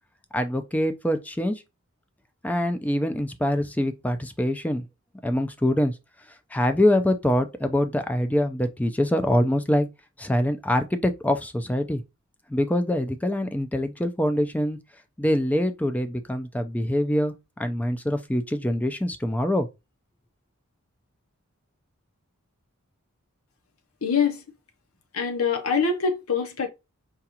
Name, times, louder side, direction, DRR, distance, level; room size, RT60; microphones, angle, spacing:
voice 1, 0.3-1.6 2.4-4.8 5.2-5.9 6.5-9.9 10.2-12.0 12.5-14.8 15.2-19.7, left 1 dB, 5° left, 0.4 m, -24 dB
voice 2, 24.0-24.4 25.1-26.7, left 5 dB, 80° left, 0.7 m, -24 dB
4.8 x 2.3 x 2.8 m
head